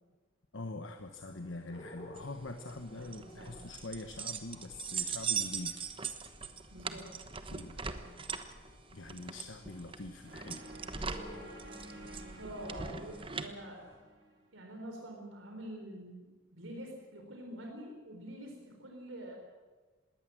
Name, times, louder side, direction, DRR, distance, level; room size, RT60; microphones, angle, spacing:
voice 1, 0.5-5.9 7.5-7.8 8.9-11.0, left 2 dB, 75° left, 7 dB, 1.2 m, -44 dB
sound 1, 1.0-14.0, equal, 35° left, 4.8 m, -57 dB
sound 2, 2.2-13.5, right 6 dB, 25° right, 1.1 m, -40 dB
voice 2, 3.0-3.6 6.7-7.1 7.7-8.2 12.4-13.8 14.5-19.4, right 1 dB, 85° right, 2 dB, 4.0 m, -46 dB
sound 3, 10.3-14.4, right 1 dB, 65° right, 5.1 m, -51 dB
21.0 x 18.0 x 7.7 m, 1.3 s
head